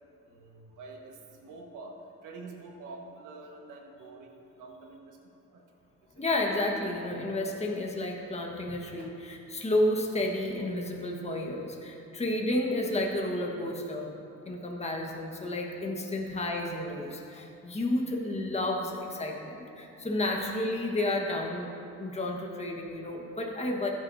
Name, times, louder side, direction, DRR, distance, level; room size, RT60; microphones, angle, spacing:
voice 1, 0.2-5.2 5.5-5.6 6.1-6.2 8.7-9.1 19.4-20.1, right 3 dB, 85° right, 1 dB, 1.5 m, -47 dB
voice 2, 6.1-14.1 14.4-21.7 22.0-23.9, left 1 dB, 20° left, 0 dB, 1.4 m, -31 dB
15.0 x 9.6 x 2.7 m, 2.6 s
cardioid pair, 90°, 30 cm